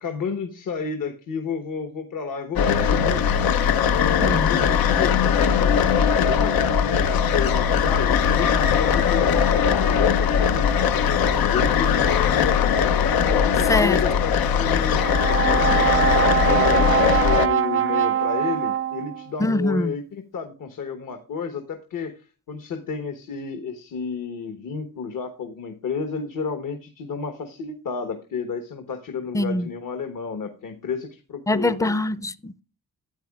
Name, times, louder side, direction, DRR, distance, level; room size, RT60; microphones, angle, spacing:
voice 1, 0.0-3.3 3.9-12.8 13.2-15.0 15.5-22.2 22.5-31.9, left 5 dB, 65° left, 1.3 m, -31 dB
sound 1, 2.6-17.5, left 7 dB, 85° left, 0.7 m, -20 dB
voice 2, 4.2-4.6 13.7-14.0 19.4-19.9 29.3-29.7 31.5-32.6, left 1 dB, 10° left, 0.5 m, -23 dB
Brass instrument, 14.9-19.3, right 10 dB, 40° right, 0.5 m, -23 dB
12.5 x 8.7 x 2.4 m
cardioid pair, 90°, 35 cm